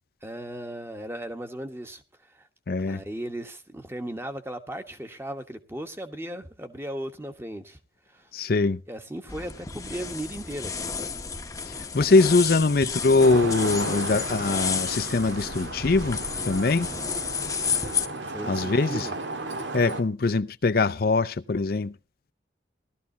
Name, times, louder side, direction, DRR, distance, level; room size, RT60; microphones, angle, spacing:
voice 1, 0.2-2.5 2.8-7.8 8.1-8.3 8.9-10.9 18.2-19.1, right 1 dB, 15° right, 1.2 m, -37 dB
voice 2, 2.7-3.0 8.3-8.8 11.7-16.2 16.5-16.9 18.5-19.1 19.7-21.9, left 3 dB, 55° left, 0.5 m, -22 dB
sound 1, 9.3-18.1, left 6 dB, 20° left, 0.9 m, -31 dB
Traffic noise roadway noise, 13.2-20.0, right 2 dB, 85° right, 1.8 m, -34 dB
17.0 x 13.0 x 2.9 m
head